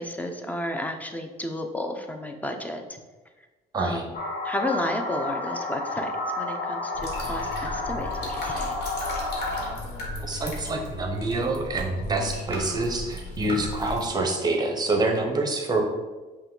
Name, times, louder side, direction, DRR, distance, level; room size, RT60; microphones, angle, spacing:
voice 1, 0.0-3.0 3.8-4.0 4.4-6.1 6.4-8.8, left 1 dB, 10° left, 4 dB, 0.5 m, -32 dB
voice 2, 3.7-4.0 10.2-15.8, right 2 dB, 25° right, 3 dB, 0.7 m, -26 dB
sound 1, 4.1-9.7, left 2 dB, 50° left, 0.8 m, -31 dB
sound 2, 6.9-14.1, left 2 dB, 75° left, 1.2 m, -35 dB
5.5 x 2.2 x 3.7 m, 1.2 s
cardioid pair, 110°, 17 cm